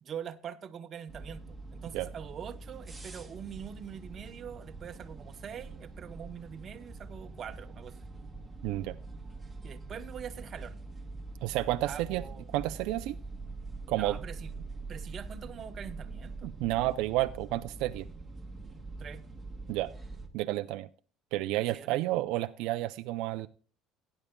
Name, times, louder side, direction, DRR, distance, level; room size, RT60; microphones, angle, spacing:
voice 1, 0.0-1.4 1.7-8.0 9.6-10.8 11.8-12.5 13.9-14.5 14.9-16.5 19.0-19.2 21.7-22.0, right 8 dB, 30° right, 0.9 m, -43 dB
sound 1, 1.1-20.3, right 3 dB, 5° right, 1.4 m, -44 dB
voice 2, 8.6-9.0 11.4-12.2 12.5-13.2 13.9-14.2 16.4-18.1 19.7-19.9 20.3-20.9 21.3-23.5, right 16 dB, 70° right, 0.4 m, -31 dB
17.5 x 9.9 x 2.3 m
cardioid pair, 160°, 0 cm